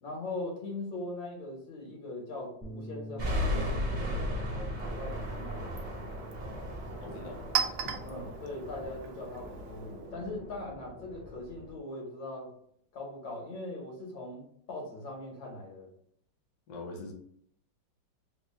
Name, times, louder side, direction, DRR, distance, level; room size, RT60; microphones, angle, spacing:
voice 1, 0.0-6.3 8.0-12.5 12.9-15.9, left 2 dB, 85° left, -1 dB, 2.0 m, -41 dB
Bass guitar, 2.6-8.9, equal, 10° left, 0.5 m, -47 dB
sound 1, 3.2-11.7, left 1 dB, 40° right, 0.6 m, -37 dB
Chink clink, 4.6-10.1, right 8 dB, 80° right, 0.7 m, -39 dB
voice 2, 7.0-7.8 16.7-17.1, left 2 dB, 65° left, 1 dB, 1.1 m, -43 dB
3.8 x 2.2 x 3.4 m, 0.66 s
omnidirectional pair, 2.0 m